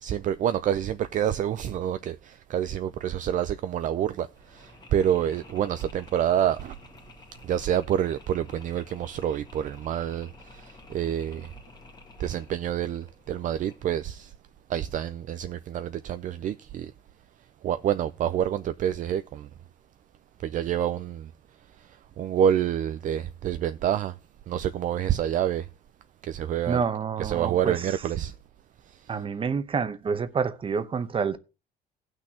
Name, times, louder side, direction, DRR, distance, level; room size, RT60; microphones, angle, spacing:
voice 1, 0.0-6.7 7.4-11.5 12.2-14.3 14.7-16.9 17.6-19.5 20.4-21.3 21.9-24.1 24.5-25.7 26.2-26.8 27.2-28.3 28.9-29.0, right 10 dB, 50° right, 0.5 m, -27 dB
Mechanisms, 4.3-14.1, left 3 dB, 25° left, 1.7 m, -51 dB
voice 2, 26.7-27.9 29.1-31.4, right 6 dB, 30° right, 0.9 m, -28 dB
18.0 x 6.2 x 2.8 m
cardioid pair, 110°, 17 cm